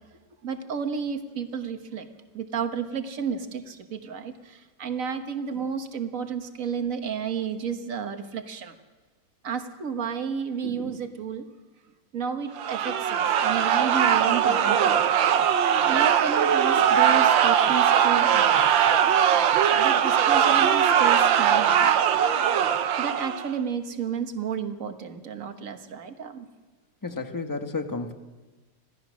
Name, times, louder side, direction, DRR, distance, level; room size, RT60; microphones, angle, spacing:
voice 1, 0.4-2.1 2.3-8.7 9.4-11.5 12.1-15.0 15.8-18.7 19.7-21.9 23.0-26.5, right 6 dB, 50° right, 6 dB, 1.7 m, -32 dB
sound 1, 12.6-23.5, right 9 dB, 90° right, 1.7 m, -20 dB
voice 2, 27.0-28.1, left 3 dB, 15° left, 6 dB, 1.0 m, -31 dB
26.5 x 16.5 x 6.3 m, 1.2 s
omnidirectional pair, 2.0 m